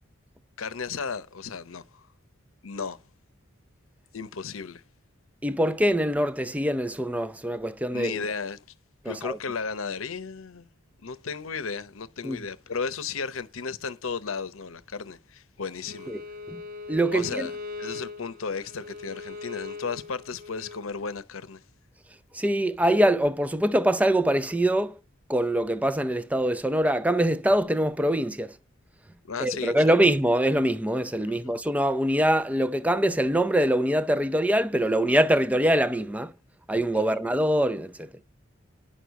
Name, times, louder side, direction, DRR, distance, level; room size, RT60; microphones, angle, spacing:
voice 1, 0.6-2.0 2.6-3.0 4.1-4.8 7.9-8.6 9.1-10.7 11.0-16.1 17.1-17.5 17.8-21.6 29.2-29.7 31.4-31.5 36.9-37.0, left 5 dB, 80° left, 0.8 m, -34 dB
voice 2, 5.4-8.2 9.0-9.4 12.2-12.4 16.1-16.2 16.5-16.6 16.9-17.5 22.3-25.0 25.3-28.6 29.4-36.3 36.7-38.1, right 1 dB, 5° right, 0.5 m, -24 dB
Bowed string instrument, 15.8-20.8, left 4 dB, 40° right, 0.7 m, -40 dB
10.0 x 6.4 x 7.0 m
head